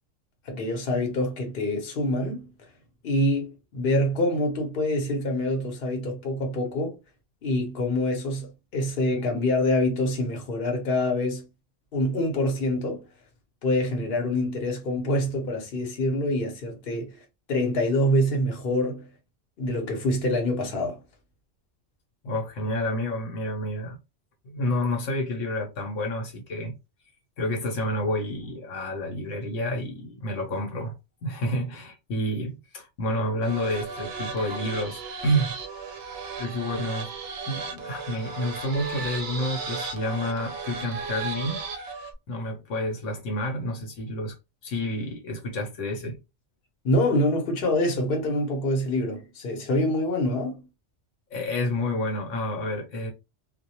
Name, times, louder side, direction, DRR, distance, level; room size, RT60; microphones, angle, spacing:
voice 1, 0.5-2.5 3.0-7.0 7.4-11.5 11.9-13.0 13.6-17.2 17.5-19.1 19.6-21.0 46.8-50.7, left 1 dB, 50° left, 0.9 m, -26 dB
voice 2, 22.2-24.0 24.4-26.7 27.4-31.0 31.2-35.6 36.4-37.1 37.4-41.6 42.3-44.4 44.6-46.2 51.3-53.1, equal, 80° left, 1.1 m, -29 dB
sound 1, 33.4-42.1, right 4 dB, 65° right, 0.7 m, -35 dB
2.3 x 2.1 x 2.7 m
omnidirectional pair, 1.3 m